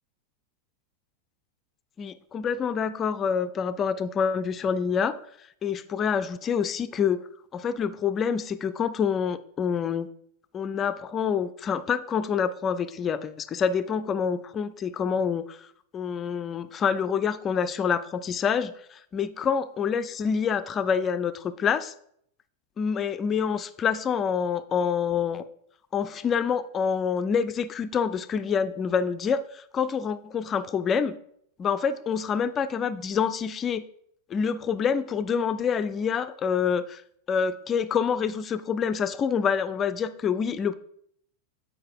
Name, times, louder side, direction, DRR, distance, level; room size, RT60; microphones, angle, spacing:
voice 1, 2.0-5.1 5.6-7.2 7.5-10.1 10.5-15.4 15.9-18.7 19.1-21.9 22.8-25.4 25.9-31.1 31.6-33.8 34.3-37.0 37.3-40.7, left 6 dB, 25° left, 13 dB, 0.4 m, -27 dB
7.4 x 5.0 x 4.6 m, 0.70 s
figure-of-eight pair, 90°, 0 cm